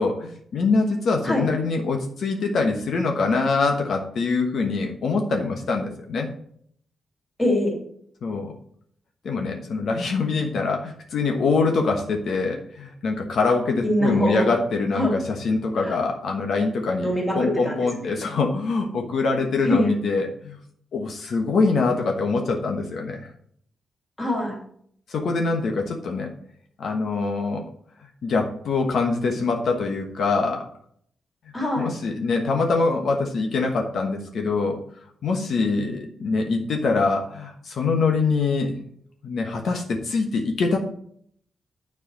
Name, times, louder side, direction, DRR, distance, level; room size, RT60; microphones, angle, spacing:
voice 1, 0.0-6.3 8.2-8.5 9.2-20.6 20.9-23.3 25.1-26.3 26.8-27.7 28.2-30.7 31.8-34.8 35.2-38.8 39.2-40.8, left 4 dB, 65° left, 2 dB, 1.2 m, -24 dB
voice 2, 7.4-7.8 13.8-14.5 14.9-15.1 15.8-16.0 17.0-18.1 19.6-20.0 24.2-24.5 31.5-31.9, left 1 dB, 15° left, -1 dB, 2.8 m, -23 dB
9.9 x 4.8 x 6.0 m, 0.64 s
wide cardioid pair, 160°, 0 cm